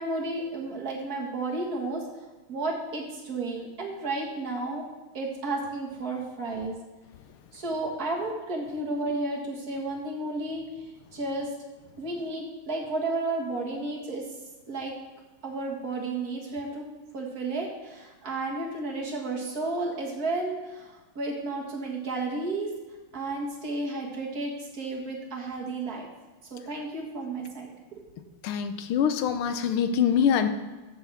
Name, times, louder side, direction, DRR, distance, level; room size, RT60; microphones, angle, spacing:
voice 1, 0.0-2.0 2.5-4.8 5.1-6.8 7.5-10.7 11.1-11.5 12.0-14.2 14.7-14.9 15.4-16.9 17.1-22.7 23.1-26.1 26.5-28.0, right 2 dB, 45° right, -1 dB, 2.1 m, -32 dB
voice 2, 28.4-30.5, left 8 dB, 90° left, 10 dB, 1.6 m, -24 dB
13.5 x 7.2 x 3.5 m, 1.2 s
omnidirectional pair, 2.3 m